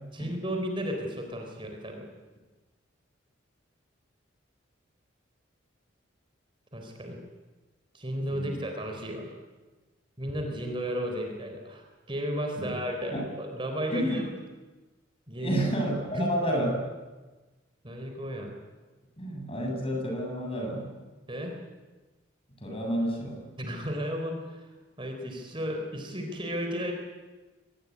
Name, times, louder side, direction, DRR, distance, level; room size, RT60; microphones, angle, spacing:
voice 1, 0.1-2.1 6.7-7.2 7.9-9.3 10.2-14.3 15.3-15.6 16.1-16.3 17.8-18.5 21.3-21.5 23.6-24.7 25.0-26.9, equal, 25° right, 3 dB, 4.0 m, -33 dB
voice 2, 15.4-16.8 19.2-20.9 22.6-23.4, equal, 30° left, 2 dB, 7.4 m, -30 dB
24.5 x 20.0 x 9.6 m, 1.2 s
head